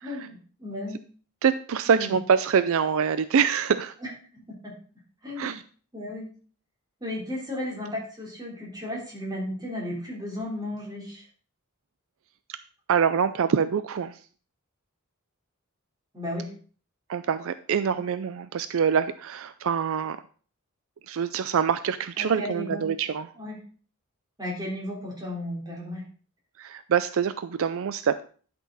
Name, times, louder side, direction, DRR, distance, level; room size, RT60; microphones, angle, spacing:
voice 1, 0.0-1.0 1.9-2.1 4.0-4.8 5.2-5.6 5.9-6.3 7.0-11.2 16.1-16.5 22.2-22.9 23.4-23.6 24.4-26.0, left 1 dB, 20° right, -3 dB, 3.6 m, -34 dB
voice 2, 1.4-3.9 5.4-5.6 12.9-14.2 17.1-20.2 21.1-23.3 26.6-28.2, right 7 dB, 65° right, 13 dB, 0.4 m, -25 dB
11.0 x 6.1 x 4.0 m, 0.41 s
head